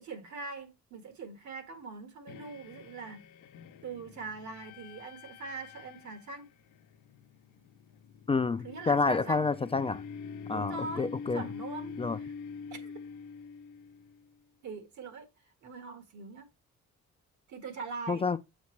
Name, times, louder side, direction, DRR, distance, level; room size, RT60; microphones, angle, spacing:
voice 1, 0.0-3.2 3.8-6.5 8.6-9.5 10.5-11.9 12.2-12.3 12.7-12.9 14.6-15.3 15.6-16.5 17.5-18.2, right 4 dB, 70° right, 1.7 m, -42 dB
sound 1, 2.3-14.3, left 6 dB, 85° left, 0.7 m, -45 dB
voice 2, 8.3-10.0 10.5-11.5 12.0-12.2 18.1-18.4, left 4 dB, 20° left, 0.3 m, -29 dB
7.0 x 5.1 x 3.2 m
cardioid pair, 90°, 30 cm